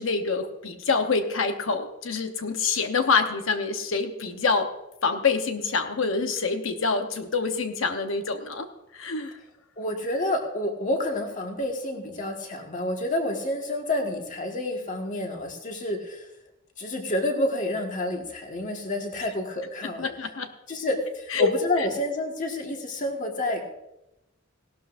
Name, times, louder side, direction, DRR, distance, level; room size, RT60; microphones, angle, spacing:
voice 1, 0.0-4.7 5.0-8.7 8.9-9.4 20.0-20.5 21.3-21.5 21.8-21.9, left 4 dB, 65° left, 6 dB, 0.9 m, -26 dB
voice 2, 9.8-16.2 16.8-20.1 20.7-23.7, left 1 dB, 35° left, 2 dB, 1.6 m, -29 dB
17.0 x 12.0 x 2.6 m, 0.91 s
head